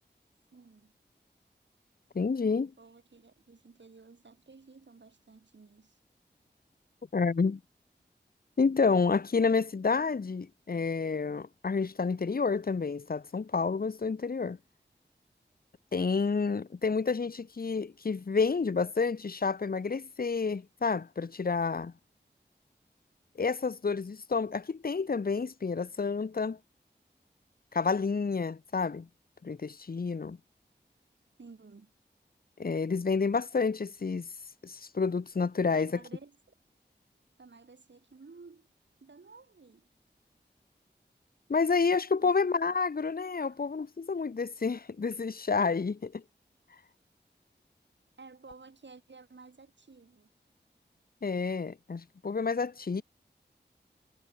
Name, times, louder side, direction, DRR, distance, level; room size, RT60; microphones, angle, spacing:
voice 1, 0.5-0.9 2.8-6.0 31.4-31.9 35.7-36.5 37.4-38.7 39.0-39.9 42.2-42.3 43.5-43.6 48.2-50.3 52.9-53.0, right 4 dB, 80° right, 6.0 m, -53 dB
voice 2, 2.1-2.7 7.1-7.6 8.6-14.6 15.9-21.9 23.4-26.6 27.7-29.1 29.4-30.4 32.6-34.3 34.6-35.9 41.5-46.2 51.2-53.0, left 4 dB, 55° left, 0.9 m, -29 dB
wide cardioid pair, 60°, 18 cm